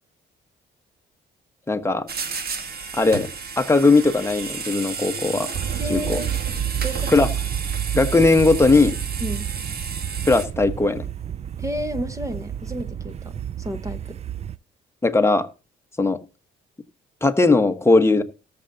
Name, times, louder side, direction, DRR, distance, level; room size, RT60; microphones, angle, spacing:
voice 1, 1.7-2.1 2.9-3.3 3.6-5.5 5.9-6.2 7.1-7.3 7.9-9.0 10.3-11.0 15.0-15.5 16.0-16.2 17.2-18.2, left 3 dB, 15° left, 1.2 m, -18 dB
sound 1, 2.1-10.5, right 5 dB, 50° right, 1.7 m, -32 dB
sound 2, 5.5-14.6, right 10 dB, 35° right, 0.4 m, -30 dB
voice 2, 5.8-6.3 6.8-7.3 9.2-9.5 11.6-14.2, equal, 15° right, 1.2 m, -32 dB
18.0 x 6.9 x 2.7 m
cardioid pair, 90°, 20 cm